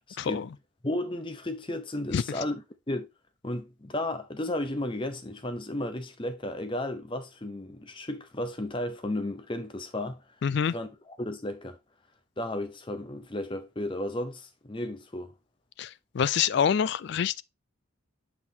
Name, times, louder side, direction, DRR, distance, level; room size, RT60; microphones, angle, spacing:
voice 1, 0.1-0.5 0.8-3.1 3.4-10.2 10.7-11.8 12.4-15.3, left 1 dB, 25° left, 0.8 m, -34 dB
voice 2, 10.4-10.7 15.8-17.4, left 7 dB, 55° left, 0.3 m, -26 dB
6.0 x 5.7 x 2.8 m
head